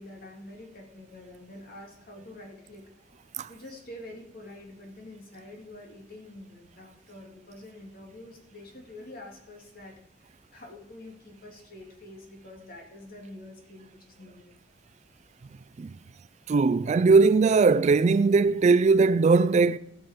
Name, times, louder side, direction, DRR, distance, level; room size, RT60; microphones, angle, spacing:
voice 1, 0.0-3.2 3.4-14.6, left 1 dB, 55° left, 2.6 m, -46 dB
voice 2, 16.5-19.8, right 4 dB, 40° right, 0.3 m, -20 dB
17.0 x 6.0 x 5.0 m
head